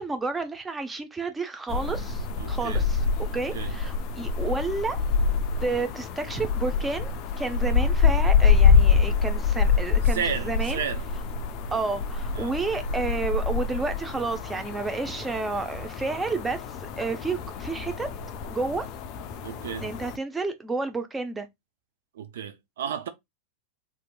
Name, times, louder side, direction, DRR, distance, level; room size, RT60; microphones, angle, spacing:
voice 1, 0.0-5.0 5.6-10.8 11.7-18.1 18.5-18.9 19.8-21.5, right 3 dB, 15° right, 0.6 m, -31 dB
sound 1, 1.7-20.2, left 5 dB, 50° left, 0.4 m, -25 dB
voice 2, 2.4-2.8 3.3-3.7 10.1-11.0 12.3-12.5 19.4-19.9 22.2-23.1, right 7 dB, 70° right, 0.4 m, -33 dB
2.7 x 2.6 x 2.2 m
hypercardioid pair, 90°, 0 cm